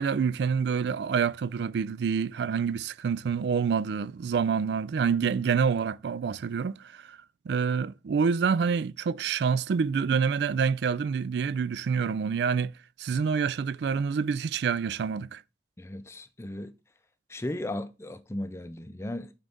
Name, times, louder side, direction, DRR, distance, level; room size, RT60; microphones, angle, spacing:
voice 1, 0.0-7.2 7.5-12.7 13.0-15.4, right 6 dB, 70° right, 0.3 m, -27 dB
voice 2, 15.8-16.7 17.3-19.3, left 1 dB, 15° left, 0.5 m, -36 dB
9.0 x 4.0 x 3.5 m
head